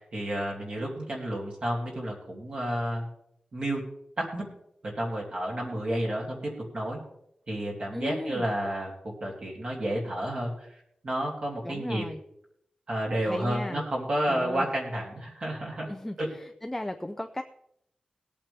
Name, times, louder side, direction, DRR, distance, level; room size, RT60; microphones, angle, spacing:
voice 1, 0.1-3.1 3.5-3.8 4.2-4.4 4.8-6.4 6.7-7.0 7.5-12.0 12.9-15.9 16.2-16.3, right 1 dB, 45° right, -2 dB, 2.8 m, -31 dB
voice 2, 7.9-8.5 11.6-12.2 13.2-13.8 14.3-14.7 15.9-17.4, left 1 dB, 10° left, 7 dB, 0.4 m, -36 dB
19.5 x 8.6 x 3.4 m, 0.74 s
wide cardioid pair, 170°, 3 cm